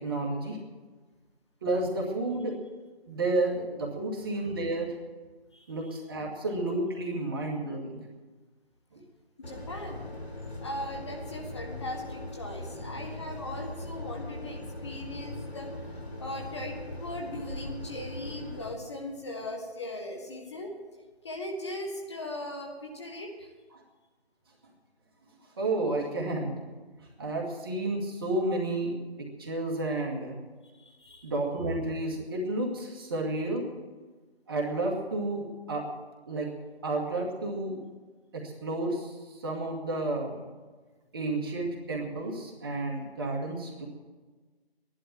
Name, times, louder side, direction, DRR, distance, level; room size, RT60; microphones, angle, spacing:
voice 1, 0.0-0.6 1.6-2.5 3.1-4.9 5.7-8.0 25.6-26.6 27.2-29.0 29.4-30.3 31.2-33.6 34.5-35.8 36.3-36.5 36.8-37.9 38.3-40.4 41.1-43.9, right 2 dB, 20° right, -1 dB, 1.9 m, -31 dB
sound 1, 9.4-18.7, left 1 dB, 85° left, 2.4 m, -40 dB
voice 2, 9.5-10.1 10.6-15.7 16.2-20.7 21.2-23.5 30.8-31.3, left 1 dB, 25° left, 1 dB, 1.5 m, -39 dB
14.0 x 11.5 x 7.5 m, 1.3 s
figure-of-eight pair, 165°, 31 cm